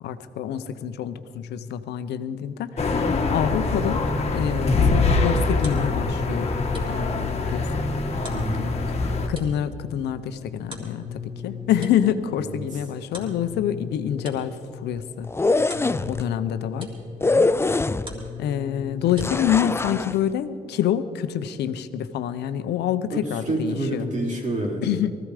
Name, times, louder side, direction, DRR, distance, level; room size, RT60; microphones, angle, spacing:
voice 1, 0.0-6.6 6.8-7.7 9.3-15.3 16.1-16.9 18.4-24.1 24.8-25.2, left 10 dB, 85° left, 12 dB, 0.7 m, -27 dB
sound 1, 2.8-9.3, left 3 dB, 40° left, 1.5 m, -24 dB
sound 2, 5.4-19.8, left 5 dB, 30° right, 3.3 m, -39 dB
voice 2, 8.3-8.7 12.4-12.6 23.1-25.0, right 2 dB, 45° right, -3 dB, 3.9 m, -28 dB
sound 3, 15.2-16.2 17.2-18.3 19.2-20.2, left 3 dB, 15° left, 0.4 m, -23 dB
19.0 x 14.5 x 5.0 m, 2.4 s
cardioid pair, 75°, 17 cm